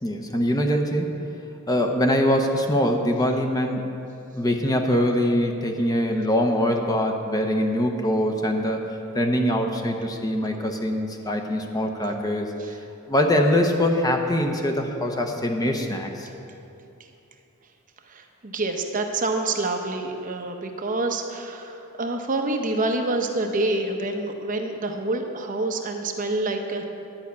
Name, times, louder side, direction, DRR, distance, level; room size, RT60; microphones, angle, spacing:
voice 1, 0.0-1.1 1.7-3.9 4.3-8.8 9.1-12.5 13.1-16.3, equal, 15° left, 3 dB, 0.7 m, -23 dB
voice 2, 18.1-26.8, right 2 dB, 35° right, 4 dB, 0.8 m, -27 dB
10.5 x 5.7 x 8.4 m, 2.7 s
head